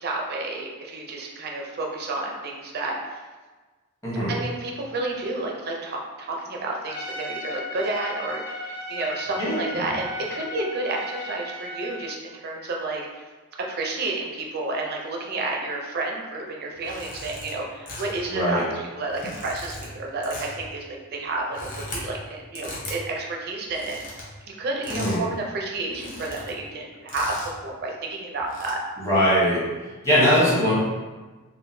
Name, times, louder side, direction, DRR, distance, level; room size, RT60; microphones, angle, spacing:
voice 1, 0.0-3.2 4.3-13.2 13.6-28.8, right 2 dB, 45° right, 0 dB, 0.5 m, -31 dB
voice 2, 4.0-4.3 9.4-9.9 18.3-18.6 24.9-25.2 29.0-29.6 30.0-30.7, equal, 15° left, -8 dB, 0.9 m, -21 dB
Trumpet, 6.8-12.1, left 1 dB, 80° left, 0.9 m, -35 dB
sound 1, 16.7-17.5 17.9-18.3 19.0-19.9 20.2-20.7 21.3-22.0 22.5-23.0 23.6-24.3 24.8-25.2 25.5-25.6 25.9-26.5 27.1-27.6 28.3-28.7, left 1 dB, 40° left, 0.8 m, -38 dB
3.7 x 2.2 x 2.6 m, 1.3 s
head